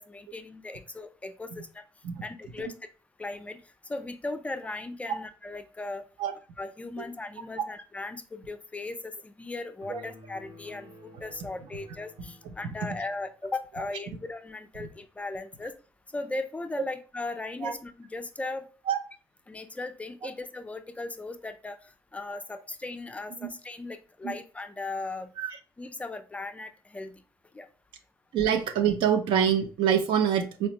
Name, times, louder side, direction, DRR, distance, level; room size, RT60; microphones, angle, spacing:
voice 1, 0.0-1.7 2.2-2.7 3.2-3.6 3.9-6.0 6.6-10.9 11.2-15.7 16.1-18.7 19.5-21.8 22.1-25.3 25.8-27.1 27.5-27.7, left 2 dB, 15° left, 8 dB, 0.3 m, -37 dB
sound 1, 9.8-13.4, left 1 dB, 65° right, 1.1 m, -52 dB
voice 2, 28.3-30.7, right 8 dB, 85° right, 7 dB, 0.5 m, -26 dB
4.3 x 2.0 x 2.8 m, 0.35 s
cardioid pair, 110°, 8 cm